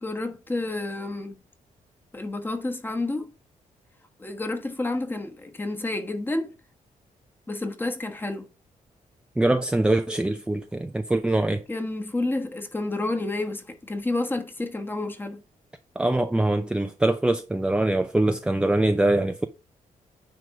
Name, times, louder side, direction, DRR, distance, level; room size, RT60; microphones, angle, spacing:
voice 1, 0.0-1.4 2.1-3.3 4.2-6.5 7.5-8.5 11.7-15.4, left 2 dB, 15° left, 1.3 m, -30 dB
voice 2, 9.4-11.6 16.0-19.5, right 2 dB, 5° right, 0.5 m, -23 dB
9.6 x 3.5 x 5.2 m
cardioid pair, 130°, 14 cm